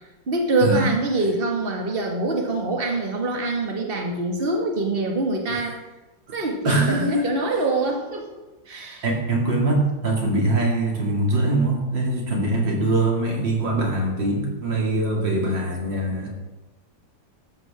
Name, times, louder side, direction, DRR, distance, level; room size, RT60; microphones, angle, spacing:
voice 1, 0.3-5.7 6.3-8.3 8.7-9.0, right 2 dB, 30° right, 1 dB, 2.0 m, -24 dB
voice 2, 6.6-7.2 9.0-16.3, right 2 dB, 70° right, -1 dB, 3.4 m, -22 dB
13.5 x 12.5 x 3.7 m, 1.1 s
omnidirectional pair, 2.1 m